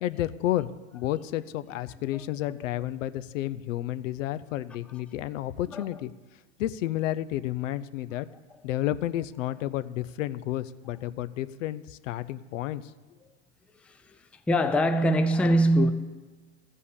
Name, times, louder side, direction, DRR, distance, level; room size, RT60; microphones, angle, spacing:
voice 1, 0.0-6.1 6.6-8.3 8.6-12.8, left 13 dB, 75° left, 0.6 m, -31 dB
voice 2, 13.8-14.1 14.5-15.9, equal, 5° left, 0.4 m, -23 dB
13.0 x 5.5 x 8.3 m
hypercardioid pair, 115°, 38 cm